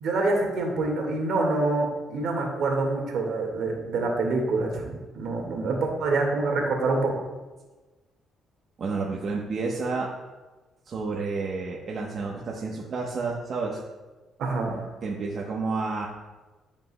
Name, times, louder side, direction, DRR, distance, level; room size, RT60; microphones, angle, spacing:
voice 1, 0.0-7.1 14.4-14.8, right 3 dB, 75° right, 1 dB, 1.7 m, -26 dB
voice 2, 8.8-10.1 10.9-13.8 15.0-16.1, right 4 dB, 55° right, -2 dB, 0.9 m, -30 dB
12.5 x 5.2 x 2.2 m, 1.2 s
cardioid pair, 90°, 0 cm